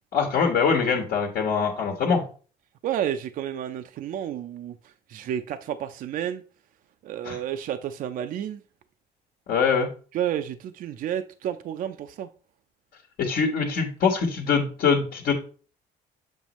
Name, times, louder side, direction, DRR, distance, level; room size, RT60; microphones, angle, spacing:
voice 1, 0.1-2.2 7.2-7.4 9.5-9.9 13.2-15.3, left 5 dB, 60° left, 1.2 m, -23 dB
voice 2, 2.8-6.4 7.0-8.6 10.1-12.3, right 10 dB, 55° right, 0.4 m, -31 dB
7.3 x 5.2 x 3.0 m
cardioid pair, 110°, 17 cm